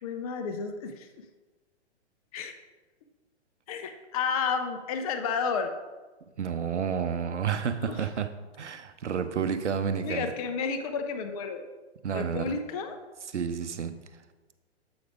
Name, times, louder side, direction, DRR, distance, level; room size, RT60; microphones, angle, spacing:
voice 1, 0.0-1.3 2.3-2.5 3.7-5.7 7.8-8.1 10.0-11.7 12.1-13.0, left 5 dB, 35° left, 0.5 m, -31 dB
voice 2, 6.4-8.3 8.6-10.3 12.0-12.6 13.3-14.0, right 7 dB, 80° right, 0.6 m, -30 dB
7.9 x 4.8 x 3.5 m
figure-of-eight pair, 120°, 35 cm